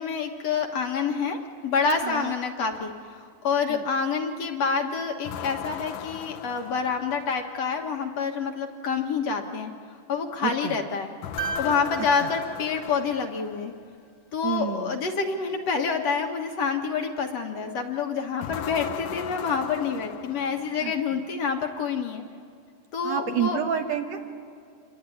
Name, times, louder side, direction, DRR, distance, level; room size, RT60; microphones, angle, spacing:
voice 1, 0.0-9.7 10.1-11.1 11.6-13.7 14.3-22.2 22.9-23.6, left 5 dB, 60° left, 3 dB, 2.2 m, -27 dB
voice 2, 2.0-2.4 3.7-3.8 10.4-10.8 12.2-12.3 14.4-15.0 20.8-21.2 23.0-24.4, right 8 dB, 60° right, 5 dB, 2.1 m, -29 dB
sound 1, 5.2-7.6 11.2-13.7 18.4-21.0, left 11 dB, 75° left, 2.3 m, -37 dB
sound 2, 11.4-13.7 15.7-15.8, right 3 dB, 40° left, 2.1 m, -36 dB
27.0 x 22.0 x 9.2 m, 2.3 s
omnidirectional pair, 3.8 m